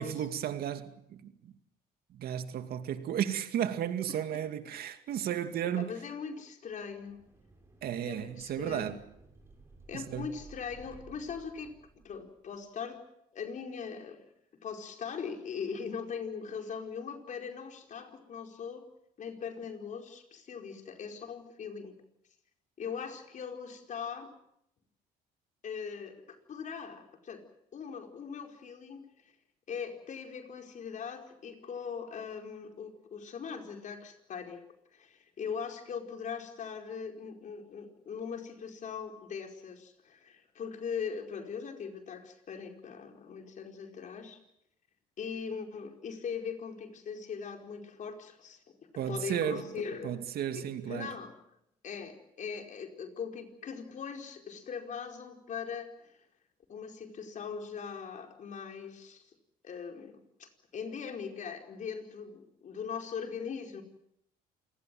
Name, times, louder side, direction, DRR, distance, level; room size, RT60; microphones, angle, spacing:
voice 1, 0.0-1.5 2.1-5.9 7.8-9.0 9.9-10.3 49.0-49.6 50.0-51.1, right 10 dB, 65° right, 2.3 m, -34 dB
voice 2, 4.1-4.5 5.8-7.2 8.0-9.0 9.9-11.7 12.0-13.0 13.3-14.2 14.6-18.9 19.2-22.0 22.8-24.3 25.6-27.4 27.7-29.1 29.7-34.6 34.9-44.4 45.2-48.6 49.1-50.2 50.5-51.4 51.8-56.2 56.7-59.2 59.6-63.8, left 6 dB, 50° left, 4.8 m, -40 dB
sound 1, 6.8-12.5, right 3 dB, 15° right, 6.6 m, -56 dB
28.0 x 19.0 x 7.8 m
cardioid pair, 110°, 17 cm